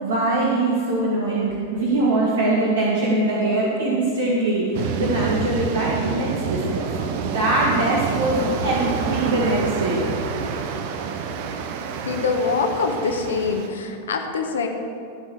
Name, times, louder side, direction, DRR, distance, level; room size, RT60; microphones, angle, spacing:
voice 1, 0.0-10.1, right 2 dB, 70° right, -5 dB, 1.9 m, -22 dB
sound 1, 4.7-13.7, right 6 dB, 50° right, 0.8 m, -28 dB
voice 2, 12.0-14.7, left 4 dB, 70° left, 4 dB, 1.2 m, -24 dB
15.5 x 5.6 x 6.5 m, 2.4 s
figure-of-eight pair, 95°, 0 cm